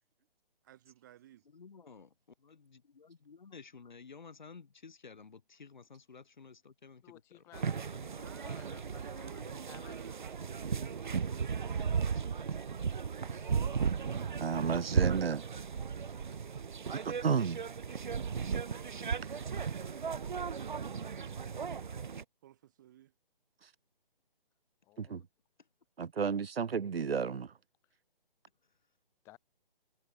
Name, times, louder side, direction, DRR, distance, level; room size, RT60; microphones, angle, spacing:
voice 1, 0.6-1.4 8.1-11.8 18.7-20.6 20.9-21.6 22.4-23.1, right 12 dB, 20° right, 7.6 m, -57 dB
voice 2, 1.4-2.1 2.4-7.4 25.6-25.7, left 5 dB, 50° left, 6.8 m, -53 dB
voice 3, 7.0-10.5 24.8-25.2 29.2-29.4, left 18 dB, 10° left, 5.4 m, -57 dB
sound 1, 7.5-22.2, right 6 dB, 55° right, 0.8 m, -35 dB
voice 4, 14.4-15.4 17.0-17.6 25.0-25.2 26.0-27.5, right 6 dB, 85° right, 1.0 m, -32 dB
hypercardioid pair, 175°, 29 cm